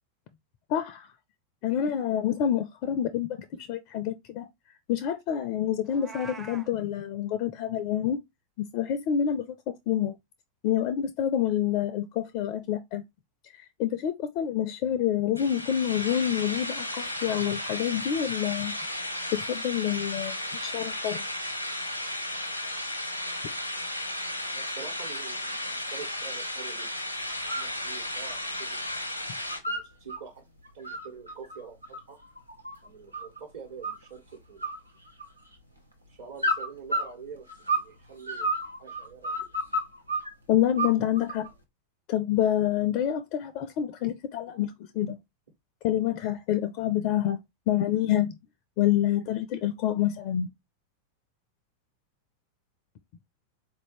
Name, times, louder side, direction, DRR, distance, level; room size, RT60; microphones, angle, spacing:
voice 1, 0.7-1.1 1.6-4.5 4.9-8.2 8.6-9.5 9.9-10.1 10.6-13.0 13.5-18.7 19.3-20.4 20.6-21.2 40.5-41.5 42.1-45.2 45.8-47.4 47.7-48.4 48.8-50.5, left 10 dB, 45° left, 0.4 m, -27 dB
Meow, 5.9-6.7, right 4 dB, 15° right, 0.5 m, -43 dB
sound 1, 15.4-29.6, left 1 dB, 90° left, 0.7 m, -34 dB
voice 2, 24.5-26.9 27.4-28.9 29.7-30.4 30.7-31.8 32.1-32.2 32.8-34.7 36.1-38.5 38.8-39.5, right 6 dB, 60° right, 1.3 m, -45 dB
sound 2, 27.3-27.7 28.0-29.0 29.3-30.2 30.6-33.4 33.8-34.3 34.6-35.6 36.4-37.9 38.2-40.3 40.8-41.5, right 1 dB, 90° right, 0.8 m, -31 dB
4.1 x 2.7 x 3.0 m
figure-of-eight pair, 90°, 0 cm